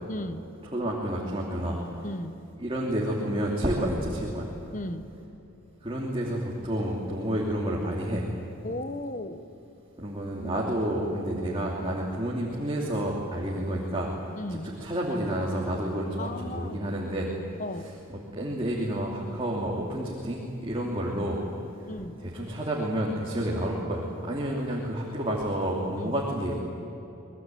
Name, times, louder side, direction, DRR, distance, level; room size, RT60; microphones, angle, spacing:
voice 1, 0.1-0.5 2.0-2.4 4.7-5.1 8.6-9.4 14.4-14.8 16.2-16.8 17.6-17.9 21.6-22.2 24.5-24.8 26.0-26.2, left 1 dB, 35° left, 11 dB, 1.1 m, -36 dB
voice 2, 0.7-1.8 2.6-4.5 5.8-8.2 10.0-14.1 14.5-17.3 17.8-17.9 18.3-21.4 22.2-26.6, right 1 dB, 25° right, -3 dB, 3.0 m, -30 dB
24.5 x 21.0 x 9.3 m, 3.0 s
head